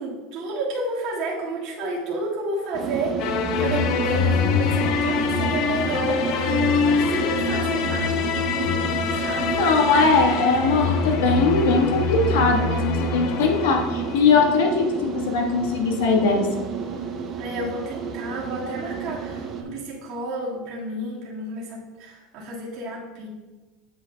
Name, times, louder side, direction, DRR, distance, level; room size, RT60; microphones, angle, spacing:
voice 1, 0.0-8.4 9.1-9.6 17.4-23.3, right 2 dB, 45° right, -5 dB, 1.8 m, -31 dB
sound 1, 2.7-19.6, right 5 dB, 30° right, 0.6 m, -31 dB
sound 2, 3.2-14.5, left 5 dB, 50° left, 0.6 m, -25 dB
voice 2, 9.6-16.7, left 4 dB, 85° left, 2 dB, 1.3 m, -20 dB
7.6 x 7.5 x 2.2 m, 1.2 s
supercardioid pair, 160°, 0 cm